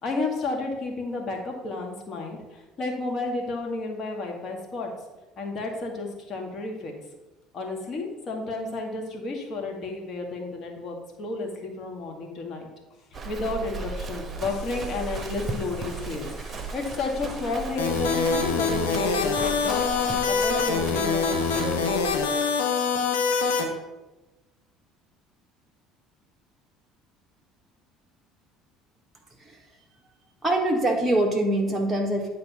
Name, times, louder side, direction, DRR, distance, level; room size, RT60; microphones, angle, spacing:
voice 1, 0.0-4.9 5.4-6.9 7.5-12.7 13.1-22.1, left 3 dB, 40° left, 1 dB, 1.9 m, -32 dB
Livestock farm animals working animals, 13.1-22.3, right 4 dB, 25° right, 1.2 m, -36 dB
sound 1, 17.8-23.6, left 5 dB, 70° left, 1.3 m, -25 dB
voice 2, 30.4-32.3, right 1 dB, 5° right, -1 dB, 1.2 m, -24 dB
9.8 x 3.9 x 5.7 m, 1.1 s
figure-of-eight pair, 60°, 0 cm